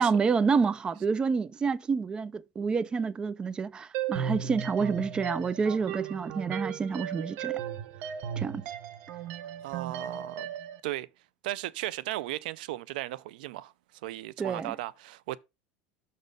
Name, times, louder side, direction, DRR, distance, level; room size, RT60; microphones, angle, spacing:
voice 1, 0.0-7.6 8.4-8.6 14.4-14.7, right 5 dB, 20° right, 0.4 m, -28 dB
sound 1, 3.9-10.8, right 8 dB, 55° right, 0.9 m, -36 dB
voice 2, 9.6-10.5 10.8-11.1 11.4-13.7 14.0-15.4, right 16 dB, 80° right, 0.4 m, -36 dB
6.3 x 4.1 x 5.1 m
supercardioid pair, 135°, 5 cm